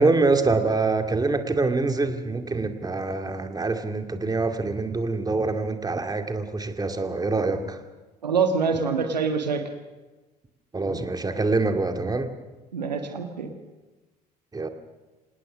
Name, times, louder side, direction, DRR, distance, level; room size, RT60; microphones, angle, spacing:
voice 1, 0.0-7.8 10.7-12.3 14.5-14.7, right 3 dB, 20° right, 6 dB, 2.3 m, -25 dB
voice 2, 8.2-9.6 12.7-13.5, right 5 dB, 85° right, 6 dB, 1.5 m, -25 dB
26.5 x 18.5 x 6.4 m, 1.2 s
figure-of-eight pair, 60°, 21 cm